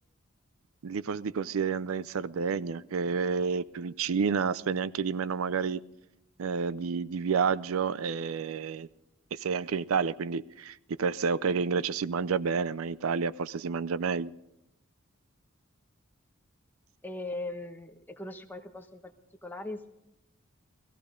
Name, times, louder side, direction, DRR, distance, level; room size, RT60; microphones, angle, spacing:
voice 1, 0.8-5.8 6.4-8.9 9.3-14.3, right 5 dB, 80° right, 18 dB, 0.5 m, -30 dB
voice 2, 17.0-19.1 19.4-19.9, left 2 dB, 10° left, 5 dB, 1.1 m, -39 dB
18.0 x 15.5 x 5.1 m, 0.86 s
head